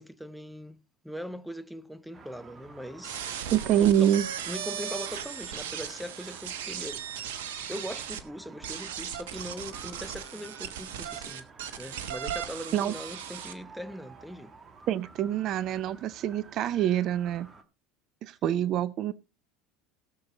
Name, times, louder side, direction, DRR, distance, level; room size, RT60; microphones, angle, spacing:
voice 1, 0.0-3.2 3.8-4.1 4.5-7.4 7.7-11.5 11.8-14.5, equal, ahead, 0.8 m, -41 dB
sound 1, 2.1-17.6, right 4 dB, 25° right, 1.8 m, -52 dB
sound 2, 3.0-8.2 8.6-13.5, right 9 dB, 65° right, 1.2 m, -37 dB
voice 2, 3.5-4.2 12.7-12.9 14.9-17.5 18.2-19.1, right 11 dB, 45° right, 0.6 m, -26 dB
17.0 x 7.0 x 4.0 m
figure-of-eight pair, 70°, 0 cm